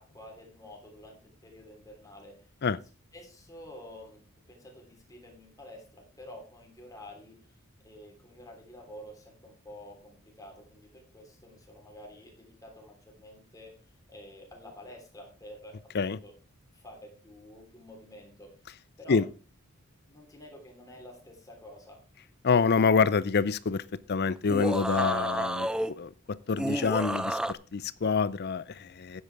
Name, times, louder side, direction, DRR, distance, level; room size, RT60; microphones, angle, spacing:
voice 1, 0.0-2.5 3.1-7.6 7.8-13.7 14.1-16.3 16.7-18.7 19.0-19.2 20.1-22.0, left 1 dB, 15° left, 3.4 m, -49 dB
voice 2, 22.4-23.8 24.1-25.7 26.0-26.1 26.5-29.2, left 5 dB, 50° left, 0.5 m, -26 dB
sound 1, 24.4-25.9 26.6-27.5, right 1 dB, 5° right, 0.4 m, -30 dB
9.7 x 8.8 x 4.7 m
head